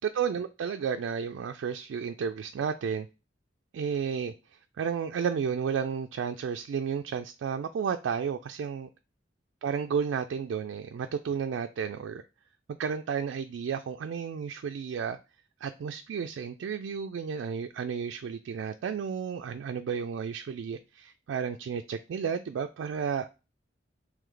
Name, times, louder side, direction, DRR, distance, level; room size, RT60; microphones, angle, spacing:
voice 1, 0.0-3.1 3.7-4.3 4.8-8.9 9.6-12.2 12.8-15.2 15.6-23.3, right 6 dB, 75° right, 0.3 m, -32 dB
3.3 x 3.1 x 3.8 m
head